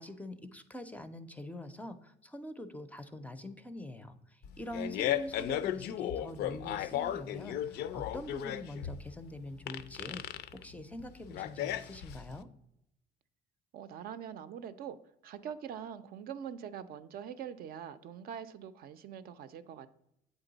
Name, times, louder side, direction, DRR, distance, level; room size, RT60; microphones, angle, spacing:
voice 1, 0.0-10.2 10.5-12.5, left 1 dB, 10° left, 9 dB, 0.4 m, -44 dB
Fart, 4.4-12.4, left 11 dB, 75° left, 0.4 m, -35 dB
voice 2, 13.7-15.0 15.2-19.9, right 8 dB, 60° right, 12 dB, 0.4 m, -43 dB
8.0 x 3.8 x 3.9 m, 0.82 s
cardioid pair, 110°, 17 cm